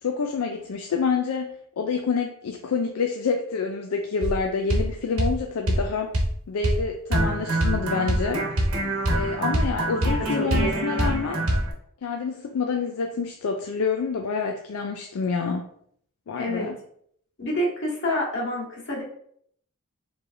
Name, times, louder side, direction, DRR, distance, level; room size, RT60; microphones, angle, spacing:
voice 1, 0.0-6.1 6.5-8.5 9.1-11.4 12.0-15.7 16.3-16.8, left 5 dB, 75° left, 4 dB, 0.4 m, -27 dB
sound 1, 4.2-4.4 4.7-4.9 5.2-5.4 5.7-5.8 6.1-6.3 6.6-6.8 7.1-11.7, right 1 dB, 75° right, 1.0 m, -24 dB
voice 2, 10.4-10.9 16.4-16.7 17.4-19.0, equal, 55° left, -3 dB, 1.5 m, -28 dB
4.7 x 3.2 x 2.6 m, 0.65 s
head